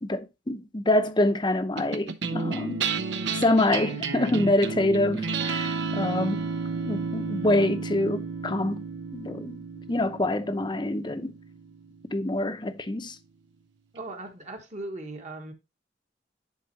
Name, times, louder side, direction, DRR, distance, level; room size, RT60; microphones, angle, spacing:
voice 1, 0.0-2.8 3.3-6.4 6.8-8.9 9.1-9.6 9.9-11.3 12.1-13.2, left 1 dB, 25° left, 0.7 m, -26 dB
sound 1, 1.8-12.4, right 4 dB, 70° right, 0.7 m, -32 dB
voice 2, 13.9-15.5, right 2 dB, 40° right, 1.5 m, -38 dB
10.5 x 4.3 x 2.9 m
head